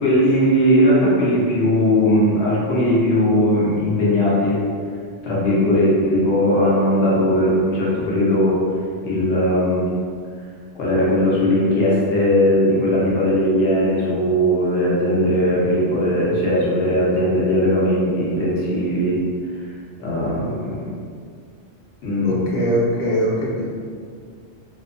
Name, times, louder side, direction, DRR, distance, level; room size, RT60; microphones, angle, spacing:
voice 1, 0.0-4.6 5.2-8.6 9.0-9.9 10.7-19.2 20.0-20.9 22.0-22.5, equal, 70° left, -6 dB, 1.0 m, -18 dB
voice 2, 22.2-23.7, equal, 50° left, -5 dB, 0.6 m, -21 dB
2.8 x 2.1 x 2.4 m, 2.1 s
omnidirectional pair, 1.2 m